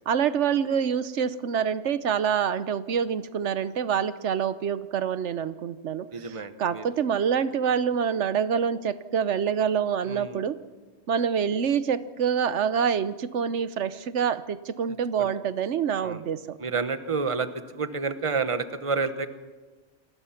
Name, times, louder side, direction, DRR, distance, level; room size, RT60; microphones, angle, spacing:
voice 1, 0.1-10.6 11.1-16.6, right 7 dB, 85° right, 14 dB, 1.2 m, -26 dB
voice 2, 6.1-6.8 10.0-10.4 15.2-15.3 16.0-16.3 16.6-17.5 17.7-19.3, right 4 dB, 30° right, 10 dB, 1.2 m, -29 dB
28.5 x 20.5 x 5.8 m, 1.3 s
omnidirectional pair, 1.2 m